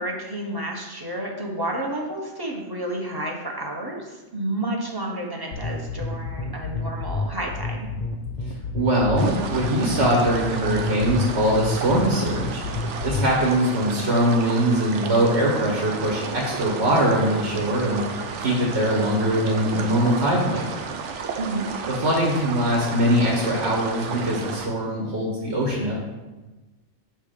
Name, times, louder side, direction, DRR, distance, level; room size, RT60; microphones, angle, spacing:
voice 1, 0.0-7.9 21.4-21.7, right 1 dB, 25° right, -1 dB, 0.7 m, -30 dB
sound 1, 5.5-13.5, left 3 dB, 55° left, 0.6 m, -29 dB
voice 2, 8.5-12.6 13.0-18.0 18.4-20.7 21.9-26.0, equal, 70° right, -2 dB, 1.4 m, -22 dB
sound 2, 9.2-24.7, right 5 dB, 85° right, 0.9 m, -33 dB
6.4 x 3.3 x 4.9 m, 1.2 s
omnidirectional pair, 1.2 m